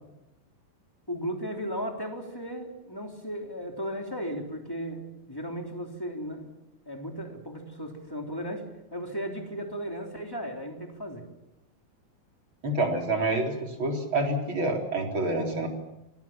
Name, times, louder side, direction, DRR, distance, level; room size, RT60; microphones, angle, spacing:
voice 1, 1.1-6.5 6.8-11.3, equal, 5° left, 2 dB, 2.6 m, -35 dB
voice 2, 12.6-15.7, right 2 dB, 30° right, 2 dB, 4.3 m, -27 dB
26.5 x 21.5 x 7.3 m, 0.90 s
omnidirectional pair, 5.0 m